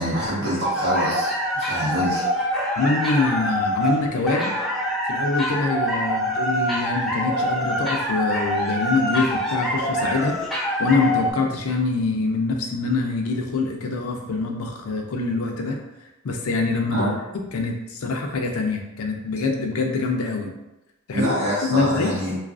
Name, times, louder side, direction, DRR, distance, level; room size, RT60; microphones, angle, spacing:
voice 1, 0.0-2.3 16.9-17.2 21.1-22.4, equal, 50° right, -8 dB, 0.7 m, -25 dB
sound 1, 0.6-11.3, equal, ahead, 0.4 m, -25 dB
voice 2, 2.8-4.5 5.1-10.4 10.8-15.8 16.2-17.1 17.5-20.5 21.1-21.4 21.7-22.1, left 3 dB, 80° left, 2 dB, 0.4 m, -24 dB
2.4 x 2.3 x 2.4 m, 0.99 s
head